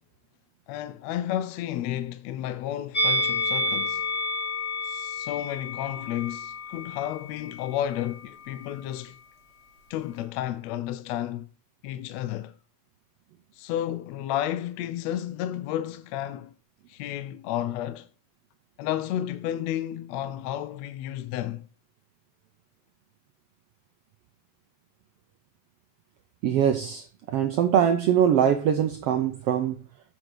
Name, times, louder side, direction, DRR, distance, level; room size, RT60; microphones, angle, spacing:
voice 1, 0.7-4.1 4.8-9.2 9.9-11.5 11.8-12.6 13.5-16.5 16.9-18.1 18.8-21.7, left 12 dB, 75° left, 1.6 m, -32 dB
Musical instrument, 2.9-8.2 8.4-8.6, left 2 dB, 25° left, 2.0 m, -30 dB
voice 2, 26.4-29.8, right 9 dB, 80° right, 1.3 m, -23 dB
7.8 x 6.5 x 4.6 m
omnidirectional pair, 3.6 m